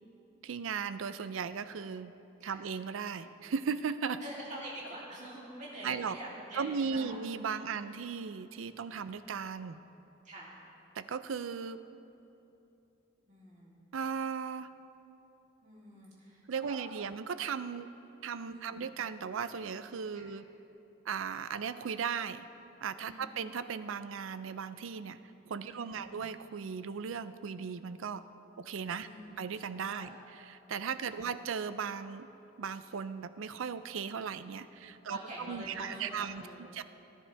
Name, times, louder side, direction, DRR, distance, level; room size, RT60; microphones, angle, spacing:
voice 1, 0.4-2.1 2.4-4.2 5.8-6.2 6.6-9.8 11.0-11.8 13.9-14.7 16.5-17.9 18.2-20.5 21.1-22.5 22.8-25.2 25.5-28.2 28.6-29.1 29.4-30.2 30.5-32.3 32.6-35.2 35.5-36.4 36.7-36.8, right 6 dB, 75° right, 13 dB, 0.4 m, -37 dB
voice 2, 4.2-7.2 7.5-7.7 8.7-9.2 10.2-10.6 13.2-13.8 15.6-16.8 18.5-18.8 20.1-20.3 23.0-23.2 25.6-26.1 29.0-29.3 29.9-30.2 31.1-31.3 34.7-36.7, right 1 dB, 35° right, -6 dB, 2.8 m, -46 dB
19.0 x 10.0 x 3.4 m, 2.9 s
head